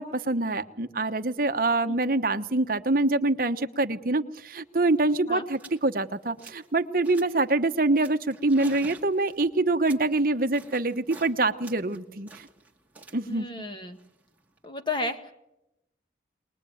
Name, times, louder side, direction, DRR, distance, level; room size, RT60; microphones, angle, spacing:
voice 1, 0.0-12.5 13.1-13.5, right 2 dB, 50° right, 8 dB, 1.1 m, -25 dB
sound 1, 4.5-4.6 4.8-5.0 5.5-5.8 6.2-6.7 7.0-7.5 8.0-11.3 11.6-14.7, right 3 dB, 10° right, 2.2 m, -49 dB
voice 2, 13.3-14.0 14.6-15.3, left 2 dB, 25° left, 6 dB, 1.7 m, -32 dB
22.5 x 21.0 x 9.2 m, 0.89 s
head